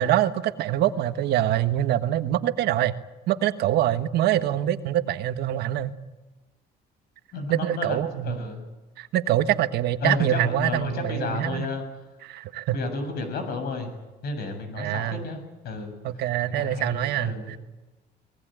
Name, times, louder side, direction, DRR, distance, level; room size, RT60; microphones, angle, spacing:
voice 1, 0.0-2.9 3.3-5.9 7.5-8.4 9.0-11.7 12.2-12.8 14.8-15.2 16.0-17.6, right 12 dB, 80° right, 10 dB, 1.4 m, -25 dB
voice 2, 7.3-8.0 8.2-8.7 10.0-11.8 12.7-13.9 14.2-15.9 16.6-17.6, left 3 dB, 70° left, 7 dB, 7.5 m, -32 dB
24.0 x 19.5 x 9.1 m, 1.1 s
cardioid pair, 110°, 17 cm